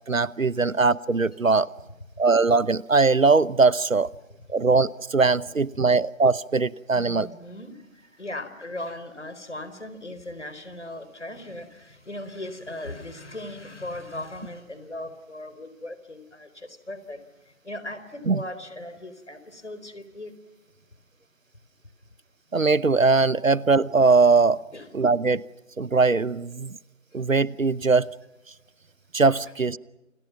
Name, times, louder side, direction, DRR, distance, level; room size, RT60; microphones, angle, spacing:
voice 1, 0.1-1.7 2.2-4.1 4.5-7.3 18.3-18.4 22.5-24.6 24.9-25.4 25.8-26.7 27.1-28.1 29.1-29.8, right 4 dB, 75° right, 20 dB, 1.0 m, -21 dB
voice 2, 6.9-17.2 17.6-20.3 24.7-25.0 25.3-25.4, left 1 dB, 60° left, 11 dB, 4.4 m, -38 dB
28.5 x 28.5 x 6.0 m, 1.0 s
figure-of-eight pair, 180°, 40 cm